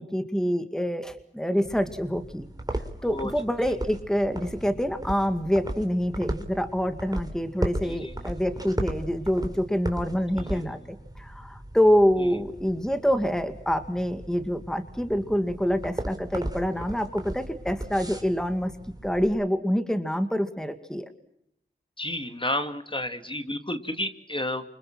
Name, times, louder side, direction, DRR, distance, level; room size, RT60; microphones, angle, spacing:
voice 1, 0.0-2.5 3.0-10.8 11.2-18.7 19.0-21.1, equal, 5° left, 8 dB, 2.1 m, -26 dB
sound 1, 1.6-19.3, right 1 dB, 20° right, 3.9 m, -37 dB
voice 2, 7.8-8.1 10.3-10.6 22.0-24.6, left 1 dB, 25° left, 7 dB, 2.4 m, -31 dB
29.0 x 26.0 x 6.0 m, 0.73 s
wide cardioid pair, 50°, 20 cm